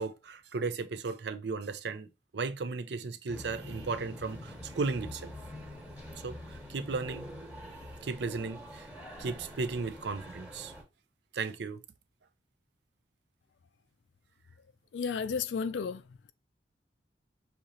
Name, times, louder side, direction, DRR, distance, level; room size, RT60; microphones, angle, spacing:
voice 1, 0.0-5.3 6.2-7.3 7.9-8.9 9.2-10.7 11.3-11.8, right 4 dB, 65° right, 0.5 m, -35 dB
sound 1, 3.3-10.8, left 1 dB, 5° right, 1.2 m, -45 dB
voice 2, 14.9-16.3, left 6 dB, 80° left, 0.4 m, -33 dB
6.3 x 2.8 x 2.8 m
head